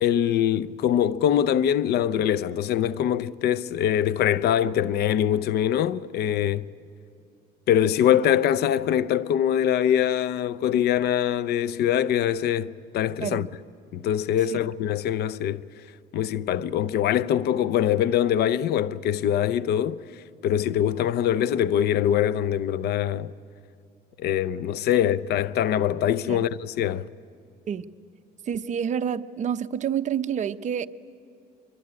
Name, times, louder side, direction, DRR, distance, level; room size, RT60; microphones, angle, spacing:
voice 1, 0.0-6.6 7.7-13.5 13.9-15.6 16.1-20.0 20.4-23.3 24.2-27.1, left 10 dB, 70° left, 0.8 m, -23 dB
voice 2, 28.5-30.9, right 8 dB, 45° right, 0.8 m, -28 dB
23.5 x 23.5 x 9.7 m
cardioid pair, 110°, 17 cm